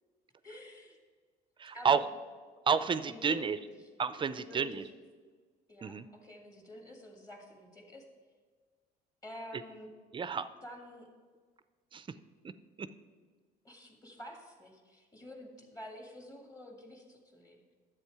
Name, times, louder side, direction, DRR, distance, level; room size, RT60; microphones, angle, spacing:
voice 1, 0.4-1.0 1.7-2.1 3.1-3.6 4.3-4.8 5.7-8.0 9.2-9.9 10.6-11.1 13.6-17.7, left 1 dB, 20° left, 2 dB, 1.9 m, -49 dB
voice 2, 1.6-2.0 2.7-3.6 4.0-4.8 5.8-6.1 10.1-10.5 11.9-12.1 12.8-12.9, right 6 dB, 30° right, 13 dB, 0.5 m, -30 dB
10.5 x 7.7 x 4.8 m, 1.5 s
cardioid pair, 110°, 17 cm